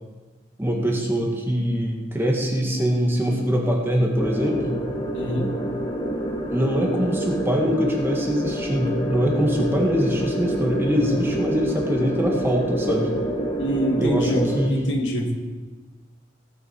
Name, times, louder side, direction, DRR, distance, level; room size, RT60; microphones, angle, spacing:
voice 1, 0.6-4.8 6.5-13.1 14.0-14.9, equal, 10° right, -1 dB, 1.7 m, -23 dB
sound 1, 4.2-14.7, right 1 dB, 20° left, 1.5 m, -27 dB
voice 2, 5.1-5.5 13.6-15.3, equal, 65° left, 1 dB, 2.1 m, -25 dB
18.0 x 9.7 x 4.6 m, 1.3 s
head